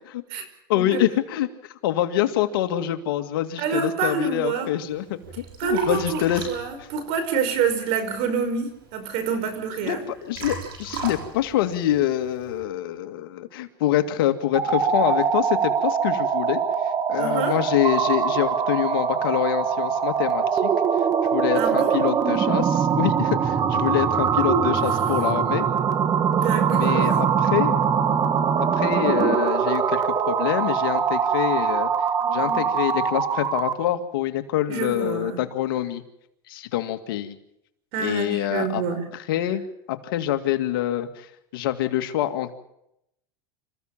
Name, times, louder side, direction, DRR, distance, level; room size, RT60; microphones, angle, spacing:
voice 1, 0.7-1.5 1.8-6.5 9.9-16.6 17.1-20.7 21.3-25.7 26.7-27.8 28.6-31.9 32.3-36.0 36.5-37.3 38.0-38.8 39.3-39.6 39.9-41.3 41.5-42.5, left 12 dB, 80° left, 7 dB, 2.2 m, -25 dB
voice 2, 3.6-4.7 5.6-10.0 17.2-17.5 21.5-22.0 24.4-24.8 26.4-27.2 32.2-32.6 34.7-35.4 37.9-39.0, right 6 dB, 60° right, 10 dB, 5.1 m, -27 dB
Liquid, 4.8-12.6, right 4 dB, 80° right, 7.3 m, -39 dB
sound 1, 14.4-33.9, right 7 dB, 30° right, 1.9 m, -23 dB
27.5 x 15.5 x 7.4 m, 0.81 s
supercardioid pair, 120°, 12 cm